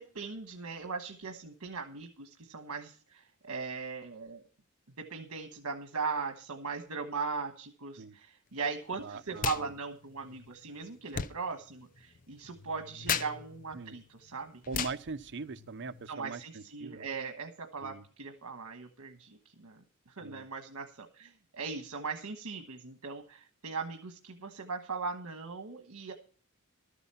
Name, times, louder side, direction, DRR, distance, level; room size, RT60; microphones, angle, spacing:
voice 1, 0.0-4.4 5.0-14.6 16.1-19.8 20.2-26.1, right 4 dB, 75° right, 1.3 m, -39 dB
voice 2, 9.0-9.7 13.7-14.0 14.7-17.1 17.8-18.0 20.2-20.5, right 4 dB, 55° right, 0.7 m, -41 dB
sound 1, 9.3-9.7 9.9-16.1, left 7 dB, 40° left, 0.5 m, -39 dB
13.0 x 8.2 x 5.6 m
head